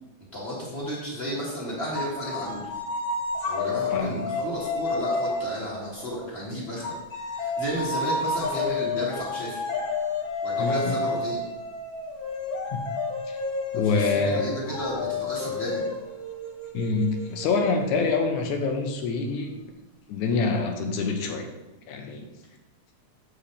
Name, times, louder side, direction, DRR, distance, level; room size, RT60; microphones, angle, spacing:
voice 1, 0.3-2.7 3.5-6.9 7.3-9.6 10.4-11.5 13.8-15.9, equal, 20° left, -5 dB, 2.0 m, -32 dB
sound 1, 1.9-6.3 6.8-18.2, left 3 dB, 60° left, 1.4 m, -31 dB
voice 2, 10.6-11.0 12.7-12.8 13.3-13.4 13.7-14.5 16.7-19.5 20.1-21.5 21.9-22.3, left 4 dB, 80° left, 4 dB, 2.3 m, -26 dB
7.4 x 7.4 x 3.4 m, 1.0 s
omnidirectional pair, 3.5 m